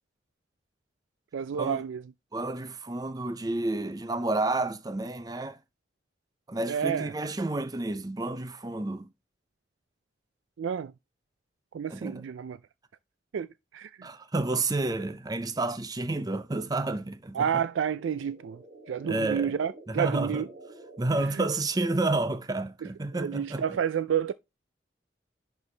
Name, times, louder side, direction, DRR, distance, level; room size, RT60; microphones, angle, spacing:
voice 1, 1.3-2.0 6.7-7.1 10.6-10.9 11.7-12.6 13.3-14.1 17.3-20.5 21.3-21.5 23.1-24.3, right 8 dB, 85° right, 0.4 m, -30 dB
voice 2, 2.3-5.6 6.5-9.1 11.9-12.2 14.0-17.6 19.0-19.5 19.9-20.4 21.0-23.6, right 2 dB, 20° right, 0.5 m, -30 dB
sound 1, 17.7-22.1, right 2 dB, 40° right, 1.4 m, -49 dB
10.5 x 4.5 x 3.3 m
head